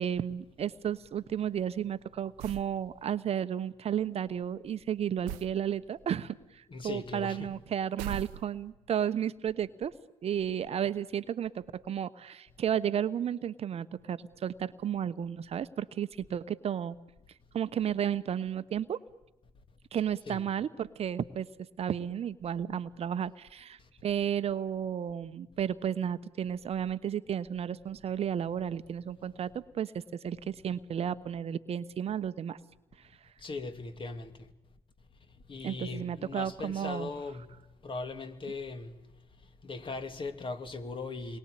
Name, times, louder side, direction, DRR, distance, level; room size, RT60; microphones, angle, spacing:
voice 1, 0.0-9.9 10.2-17.0 17.5-19.0 19.9-21.5 21.8-32.6 35.6-37.1, right 9 dB, 45° right, 1.1 m, -33 dB
sound 1, 2.4-2.8 5.3-5.6 8.0-8.8, right 11 dB, 70° right, 0.9 m, -39 dB
voice 2, 6.7-7.5 20.3-20.5 23.8-23.9 33.4-34.5 35.3-41.4, left 3 dB, 35° left, 2.8 m, -40 dB
29.5 x 22.0 x 8.6 m
figure-of-eight pair, 55°, 15 cm